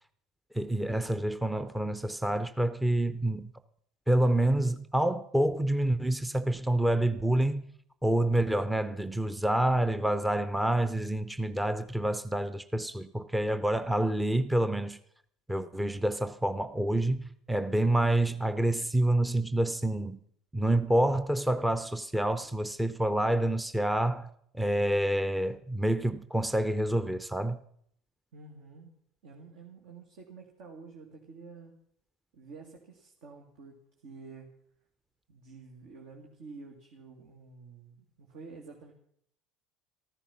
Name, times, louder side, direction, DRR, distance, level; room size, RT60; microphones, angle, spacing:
voice 1, 0.5-3.5 4.1-7.7 8.0-15.0 15.5-20.2 20.5-24.3 24.5-27.6, right 1 dB, 5° right, 0.7 m, -28 dB
voice 2, 28.3-29.0 29.2-31.8 32.3-33.7 34.0-34.5 35.3-38.9, right 4 dB, 60° right, 2.2 m, -49 dB
14.0 x 13.5 x 5.9 m
figure-of-eight pair, 65°, 0 cm